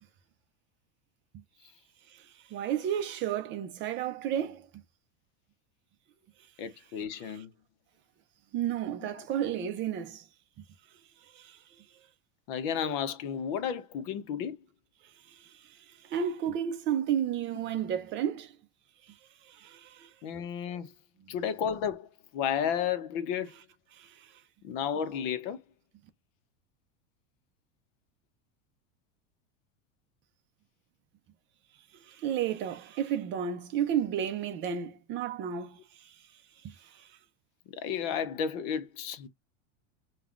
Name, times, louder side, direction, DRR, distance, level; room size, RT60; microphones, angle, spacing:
voice 1, 2.1-4.7 8.5-10.2 11.3-11.6 15.3-18.5 19.1-19.2 19.4-20.1 23.9-24.3 32.1-36.1 36.6-37.1, right 9 dB, 30° right, 0.5 m, -32 dB
voice 2, 6.6-7.5 9.0-9.3 12.5-14.6 20.2-20.9 21.3-23.5 24.6-25.6 37.7-39.3, left 8 dB, 50° left, 0.8 m, -32 dB
5.4 x 2.3 x 2.4 m
supercardioid pair, 145°, 38 cm